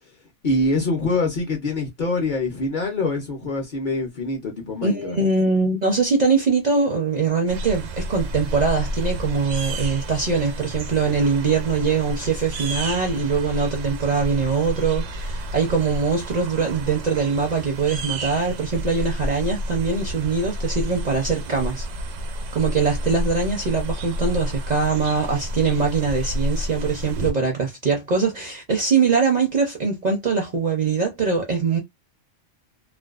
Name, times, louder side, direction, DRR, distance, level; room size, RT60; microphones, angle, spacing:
voice 1, 0.4-5.2, left 2 dB, 50° left, 0.7 m, -24 dB
voice 2, 4.8-21.9 22.5-31.8, right 4 dB, 50° right, 0.5 m, -22 dB
sound 1, 7.5-27.3, equal, 85° right, 1.0 m, -30 dB
2.5 x 2.2 x 2.3 m
omnidirectional pair, 1.2 m